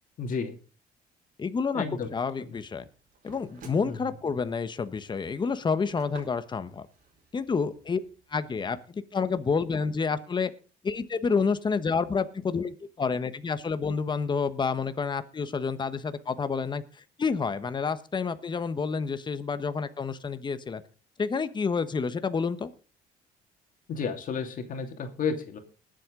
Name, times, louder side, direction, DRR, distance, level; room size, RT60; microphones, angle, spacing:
voice 1, 0.2-0.6 1.7-2.1 2.4-2.5 3.8-4.0 23.9-25.6, left 5 dB, 50° left, 6 dB, 2.5 m, -32 dB
voice 2, 1.4-1.8 2.1-2.8 3.2-6.9 7.3-8.0 8.3-10.5 10.8-16.8 17.2-20.8 21.2-22.7, left 5 dB, 25° left, 11 dB, 1.1 m, -29 dB
sound 1, 2.6-8.8, right 4 dB, 55° right, 4.8 m, -55 dB
20.5 x 7.8 x 3.8 m, 0.35 s
cardioid pair, 110°, 17 cm